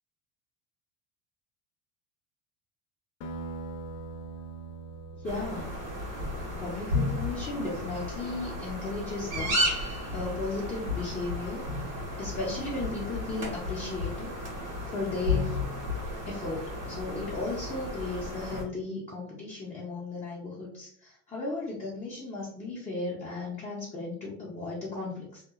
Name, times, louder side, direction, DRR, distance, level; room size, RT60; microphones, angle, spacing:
sound 1, 3.2-8.3, right 3 dB, 60° left, 0.6 m, -43 dB
voice 1, 5.2-5.8 6.5-11.6 12.2-14.3 14.9-15.6 16.3-25.4, left 3 dB, 15° left, -5 dB, 0.6 m, -35 dB
sound 2, 5.2-18.6, left 2 dB, 75° right, 1.5 m, -33 dB
2.8 x 2.3 x 2.4 m, 0.66 s
cardioid pair, 130°, 42 cm